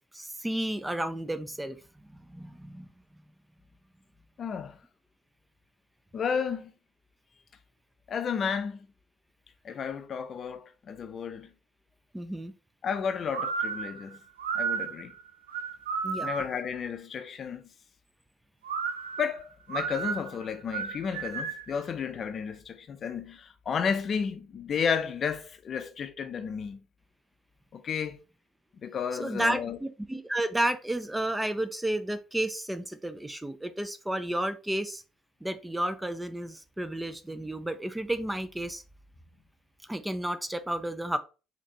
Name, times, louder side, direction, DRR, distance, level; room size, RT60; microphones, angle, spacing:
voice 1, 0.1-1.8 2.1-2.9 12.1-12.5 16.0-16.3 29.1-35.0 35.4-38.8 39.8-41.2, right 1 dB, 10° right, 0.4 m, -32 dB
voice 2, 4.4-4.8 6.1-6.7 8.1-8.9 9.6-11.5 12.8-14.2 14.5-15.1 16.2-17.7 19.2-26.9 27.7-28.2 28.8-29.8, left 6 dB, 45° left, 0.5 m, -32 dB
sound 1, 13.3-16.6 18.6-21.7, right 6 dB, 85° right, 0.4 m, -33 dB
4.0 x 2.9 x 2.9 m
hypercardioid pair, 55°, 0 cm